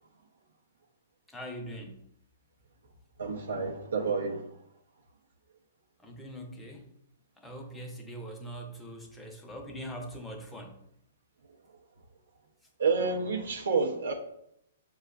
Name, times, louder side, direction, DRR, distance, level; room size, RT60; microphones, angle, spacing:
voice 1, 1.3-2.0 6.0-6.9 7.4-10.8, equal, 5° left, 2 dB, 0.6 m, -42 dB
voice 2, 3.2-4.5 12.8-14.1, right 4 dB, 80° right, -1 dB, 0.6 m, -29 dB
6.3 x 2.3 x 2.3 m, 0.76 s
hypercardioid pair, 125°, 0 cm